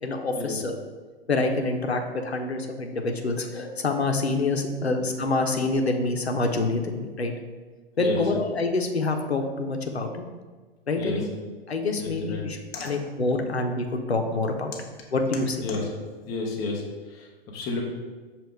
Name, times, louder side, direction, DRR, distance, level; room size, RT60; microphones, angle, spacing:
voice 1, 0.0-0.8 1.3-7.3 8.0-10.2 10.9-11.3 11.7-14.7 15.1-15.6, left 3 dB, 85° left, 4 dB, 0.6 m, -26 dB
voice 2, 11.0-11.3 12.0-12.5 12.7-12.9 15.6-15.9 16.2-17.8, left 3 dB, 10° left, -1 dB, 0.3 m, -31 dB
6.2 x 2.4 x 3.6 m, 1.4 s
figure-of-eight pair, 105°, 31 cm